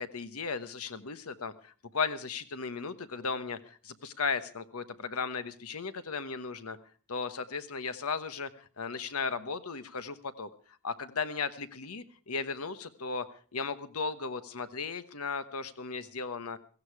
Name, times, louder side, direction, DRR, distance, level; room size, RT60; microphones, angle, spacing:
voice 1, 0.0-6.8 7.1-10.5 10.8-13.3 13.5-16.6, left 5 dB, 80° left, 12 dB, 1.2 m, -36 dB
17.0 x 15.0 x 4.8 m, 0.41 s
head